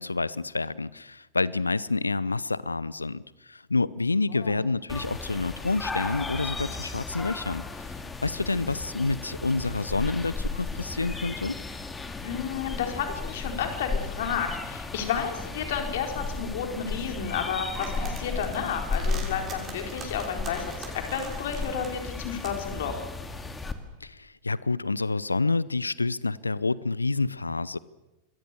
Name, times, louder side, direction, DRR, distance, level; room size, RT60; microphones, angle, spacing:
voice 1, 0.0-7.6 8.2-11.6 24.0-27.8, left 3 dB, 80° left, 21 dB, 0.7 m, -28 dB
sound 1, 4.9-23.7, left 3 dB, 15° left, 2.3 m, -35 dB
voice 2, 12.2-23.0, left 7 dB, 55° left, 4 dB, 4.2 m, -32 dB
sound 2, 17.7-23.7, right 5 dB, 25° right, 6.4 m, -44 dB
27.0 x 22.0 x 6.9 m, 1.1 s
figure-of-eight pair, 90°, 0 cm